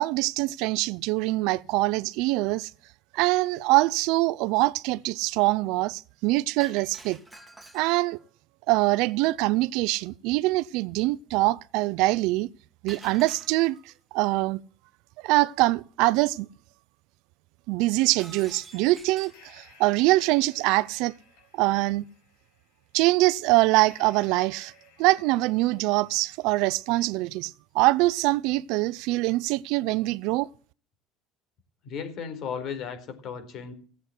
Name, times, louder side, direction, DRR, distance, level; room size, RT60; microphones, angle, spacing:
voice 1, 0.0-2.7 3.1-7.2 7.7-8.2 8.7-12.5 12.8-13.8 14.1-14.6 15.2-16.5 17.7-21.1 21.6-22.0 22.9-24.7 25.0-30.5, right 20 dB, 75° right, 0.6 m, -24 dB
Shatter, 6.6-8.3 12.9-13.9 18.2-19.5, right 2 dB, 5° right, 2.3 m, -48 dB
sound 1, 18.4-27.1, left 5 dB, 90° left, 5.1 m, -59 dB
voice 2, 31.8-33.7, left 7 dB, 55° left, 4.4 m, -35 dB
16.5 x 8.2 x 7.6 m
supercardioid pair, 110°, 0 cm